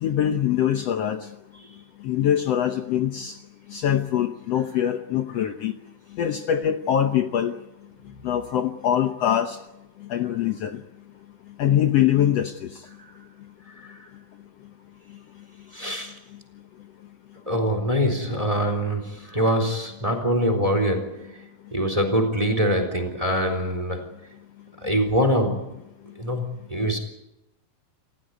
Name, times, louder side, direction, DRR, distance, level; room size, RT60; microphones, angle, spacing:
voice 1, 0.0-1.2 2.0-3.3 3.7-5.7 6.2-7.5 8.2-9.6 10.1-10.8 11.6-12.7, left 10 dB, 80° left, 7 dB, 1.4 m, -23 dB
voice 2, 15.7-16.1 17.5-24.1 24.8-25.8 26.2-27.0, equal, 10° right, 6 dB, 3.2 m, -24 dB
28.5 x 15.5 x 9.4 m, 0.91 s
omnidirectional pair, 4.3 m